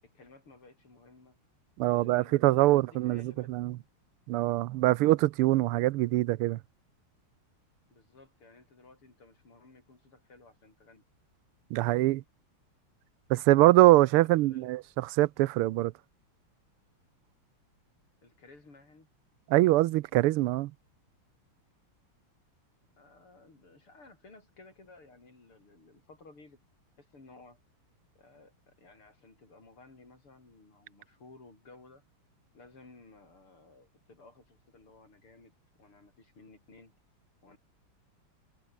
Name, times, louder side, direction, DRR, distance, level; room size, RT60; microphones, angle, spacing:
voice 1, 0.0-1.4 1.9-3.9 7.9-11.1 14.1-14.8 18.2-19.1 23.0-26.6 27.0-27.6 28.2-32.0 32.5-36.9 37.4-37.6, left 3 dB, 80° left, 7.5 m, -56 dB
voice 2, 1.8-3.8 4.3-6.6 11.7-12.2 13.3-15.9 19.5-20.7, right 17 dB, 90° right, 1.6 m, -24 dB
omnidirectional pair, 2.4 m